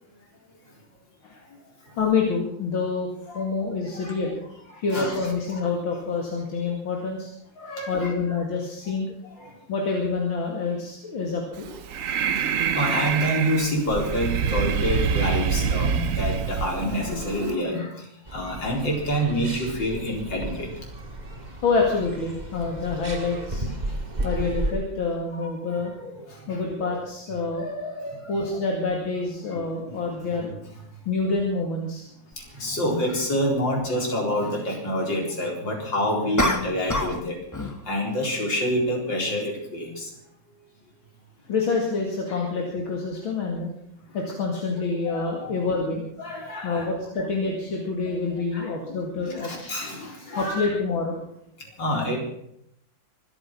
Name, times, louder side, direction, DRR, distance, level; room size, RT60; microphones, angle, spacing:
voice 1, 2.0-3.1 3.3-4.3 4.8-7.3 7.9-9.1 9.7-11.7 21.6-23.7 24.2-30.5 31.1-32.0 41.5-43.7 44.1-46.0 46.6-49.5 50.4-51.2, left 4 dB, 90° left, 0 dB, 3.2 m, -27 dB
voice 2, 7.6-8.1 9.4-9.6 12.0-20.7 23.9-24.0 25.4-25.5 26.3-26.6 29.5-29.7 32.4-37.4 37.8-40.1 44.1-44.2 45.1-45.2 46.2-46.9 48.5-48.7 49.3-50.7 51.6-52.2, equal, 65° left, 0 dB, 4.9 m, -27 dB
Breathing, 11.6-17.5, right 7 dB, 55° right, 1.0 m, -26 dB
sound 1, 18.2-24.7, right 1 dB, 20° right, 2.1 m, -33 dB
sound 2, 32.3-32.4 36.4-37.3 37.5-37.8, left 1 dB, 10° left, 1.2 m, -25 dB
24.5 x 9.1 x 6.1 m, 0.73 s
omnidirectional pair, 2.1 m